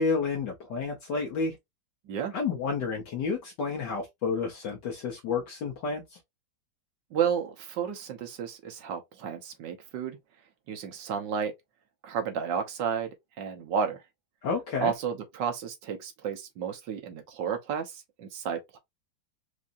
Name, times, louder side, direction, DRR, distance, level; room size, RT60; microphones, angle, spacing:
voice 1, 0.0-1.6 2.3-6.2 14.4-14.9, left 4 dB, 65° left, 1.5 m, -30 dB
voice 2, 7.1-10.2 10.7-11.5 12.0-14.0 14.8-18.8, right 7 dB, 70° right, 1.5 m, -32 dB
4.9 x 2.7 x 2.5 m
omnidirectional pair, 2.1 m